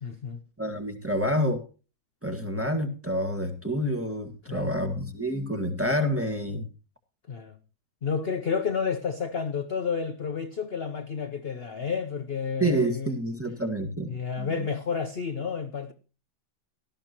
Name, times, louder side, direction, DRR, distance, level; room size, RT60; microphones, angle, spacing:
voice 1, 0.0-0.4 4.4-4.7 7.3-7.6 8.0-13.2 14.1-15.9, left 6 dB, 45° left, 0.9 m, -30 dB
voice 2, 0.6-1.6 2.2-6.7 12.6-14.1 14.4-14.5, equal, 10° right, 1.5 m, -28 dB
18.0 x 13.0 x 2.9 m
omnidirectional pair, 1.8 m